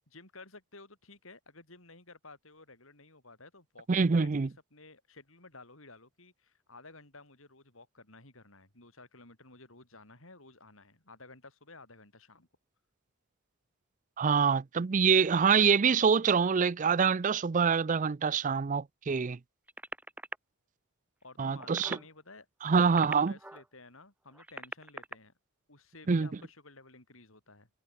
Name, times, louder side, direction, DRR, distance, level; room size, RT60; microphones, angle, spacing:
voice 1, 0.1-12.5 21.2-25.3 25.7-27.7, left 3 dB, 70° left, 6.7 m, -54 dB
voice 2, 3.9-4.5 14.2-19.4 21.4-22.0 22.6-23.3 26.1-26.3, right 5 dB, 35° right, 0.4 m, -25 dB
sound 1, 19.7-20.4 21.5-22.1 22.7-23.7 24.3-25.2 26.3-26.5, right 1 dB, 5° right, 1.6 m, -43 dB
head